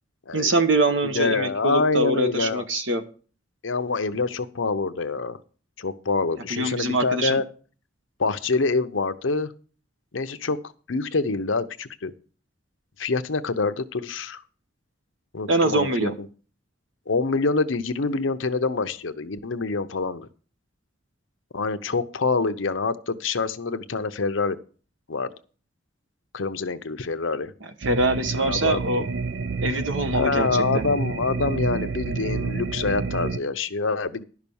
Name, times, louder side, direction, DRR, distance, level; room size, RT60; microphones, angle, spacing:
voice 1, 0.3-3.0 6.5-7.4 15.5-16.2 27.8-29.0 29.6-30.8, right 2 dB, 85° right, 8 dB, 1.3 m, -23 dB
voice 2, 1.1-2.7 3.6-5.4 5.8-7.4 8.2-9.5 10.1-10.6 10.9-12.1 13.0-14.4 15.3-16.1 17.1-20.3 21.5-24.6 25.1-25.3 26.3-27.5 28.4-29.1 30.1-34.2, left 4 dB, 85° left, 10 dB, 0.8 m, -26 dB
sound 1, 27.8-33.4, right 4 dB, 65° right, 0.5 m, -29 dB
11.5 x 6.0 x 7.0 m, 0.40 s
head